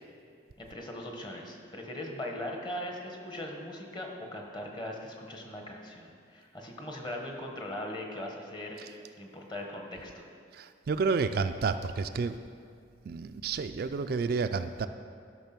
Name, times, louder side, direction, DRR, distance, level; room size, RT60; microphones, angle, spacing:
voice 1, 0.6-10.3, left 1 dB, 25° left, 1 dB, 1.2 m, -40 dB
voice 2, 10.9-12.4 13.1-14.9, right 4 dB, 50° right, 9 dB, 0.3 m, -30 dB
12.5 x 6.0 x 5.9 m, 2.3 s
head